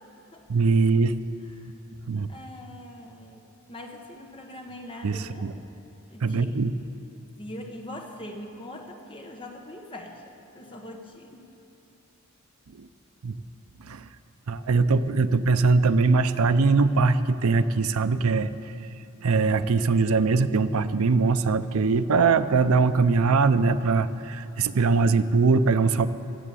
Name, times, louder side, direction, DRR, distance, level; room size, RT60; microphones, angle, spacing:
voice 1, 0.5-1.1 2.1-2.3 5.0-5.5 6.2-6.8 12.8-12.9 13.2-13.3 13.8-14.1 14.5-18.7 19.2-26.1, right 4 dB, 75° right, 12 dB, 0.5 m, -22 dB
voice 2, 2.3-3.4 3.7-5.5 6.1-6.6 7.4-11.4, left 1 dB, 25° left, 2 dB, 1.2 m, -42 dB
15.0 x 7.9 x 8.3 m, 3.0 s
head